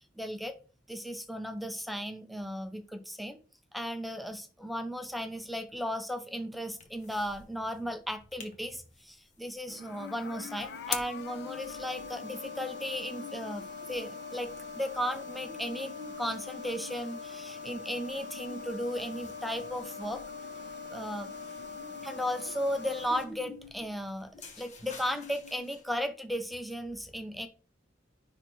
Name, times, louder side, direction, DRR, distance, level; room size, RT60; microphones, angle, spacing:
voice 1, 0.2-0.6 0.9-3.4 3.7-14.5 14.8-15.9 16.2-20.2 20.9-21.3 22.0-24.3 24.6-27.5, equal, ahead, 7 dB, 0.5 m, -35 dB
sound 1, 6.8-7.4 7.7-7.8 8.1-8.5 8.9-26.1, left 5 dB, 40° left, 1.2 m, -50 dB
sound 2, 9.7-23.2, left 5 dB, 65° left, 0.7 m, -42 dB
9.8 x 3.4 x 3.1 m, 0.35 s
head